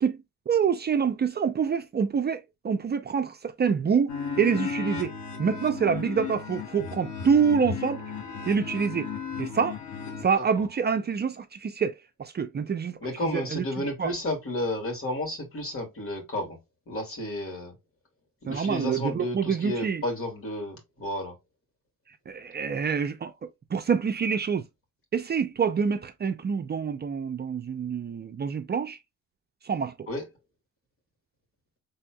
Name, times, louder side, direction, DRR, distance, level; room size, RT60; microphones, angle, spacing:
voice 1, 0.5-4.1 4.4-5.1 5.4-8.0 8.5-9.1 9.4-9.8 10.2-11.9 12.2-14.1 18.5-20.0 22.3-23.3 23.7-24.6 25.1-29.0 29.6-30.1, right 6 dB, 35° right, 0.5 m, -26 dB
sound 1, 4.1-10.2, left 6 dB, 75° left, 1.3 m, -35 dB
voice 2, 13.0-16.6 16.9-17.7 18.4-21.3 30.1-30.2, left 1 dB, 45° left, 2.2 m, -32 dB
4.3 x 3.5 x 2.3 m
cardioid pair, 90°, 30 cm